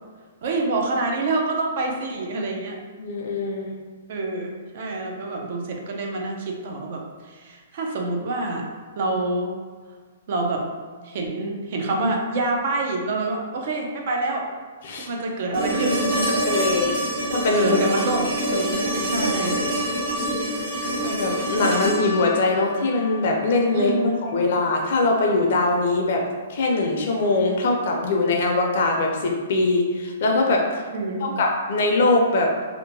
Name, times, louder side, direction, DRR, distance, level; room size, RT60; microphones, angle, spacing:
voice 1, 0.4-2.8 4.1-8.6 9.0-9.5 10.3-10.6 11.0-14.5 14.9-17.1 17.5-19.7 23.7-24.4 30.9-31.3, right 2 dB, 50° right, 1 dB, 0.4 m, -27 dB
voice 2, 3.0-3.7 14.8-15.1 16.4-17.0 17.3-18.0 18.9-19.2 21.0-26.2 26.5-30.8 31.2-32.5, left 2 dB, 55° left, 0 dB, 0.5 m, -22 dB
sound 1, 15.5-23.6 25.7-25.8, right 1 dB, 70° right, 1.5 m, -26 dB
2.8 x 2.1 x 2.6 m, 1.5 s
hypercardioid pair, 155°, 0 cm